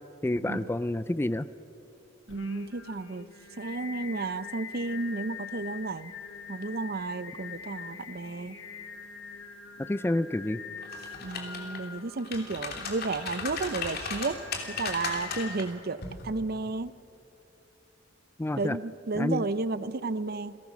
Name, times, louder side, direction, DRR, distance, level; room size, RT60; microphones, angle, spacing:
voice 1, 0.2-1.5 9.9-10.6 18.4-18.8 19.2-19.4, left 1 dB, 15° left, 16 dB, 0.4 m, -28 dB
Singing, 2.3-15.6, left 6 dB, 80° left, 1.8 m, -44 dB
voice 2, 2.3-3.3 3.6-6.1 6.5-8.6 11.2-14.4 14.7-16.9 18.6-20.6, right 3 dB, 55° right, 15 dB, 0.7 m, -32 dB
sound 1, 10.8-11.8 12.2-15.6 16.0-16.2, left 5 dB, 55° left, 3.0 m, -36 dB
29.0 x 18.0 x 6.1 m, 2.7 s
head